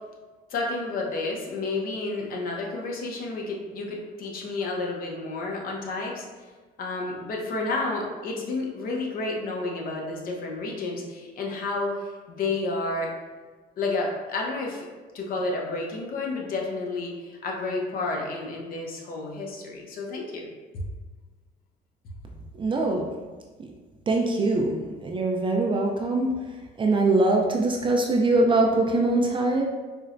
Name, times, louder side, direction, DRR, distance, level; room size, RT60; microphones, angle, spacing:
voice 1, 0.5-6.3 6.8-13.1 13.8-14.8 15.1-20.5 20.7-20.8, left 3 dB, 60° left, -1 dB, 0.7 m, -30 dB
voice 2, 22.5-23.1 23.6-23.7 24.1-29.7, right 2 dB, 30° right, 0 dB, 0.3 m, -23 dB
4.3 x 2.1 x 2.5 m, 1.4 s
cardioid pair, 110°, 17 cm